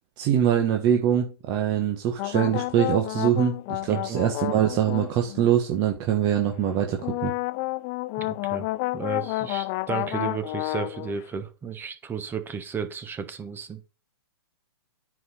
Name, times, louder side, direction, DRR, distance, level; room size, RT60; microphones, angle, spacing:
voice 1, 0.2-7.3, right 10 dB, 35° right, 3 dB, 1.4 m, -23 dB
sound 1, 2.2-5.6 7.0-11.2, left 19 dB, 30° left, 0.3 m, -30 dB
voice 2, 8.2-8.7 8.9-13.8, right 6 dB, 15° right, 9 dB, 1.2 m, -33 dB
9.4 x 5.1 x 4.2 m, 0.33 s
hypercardioid pair, 125°, 13 cm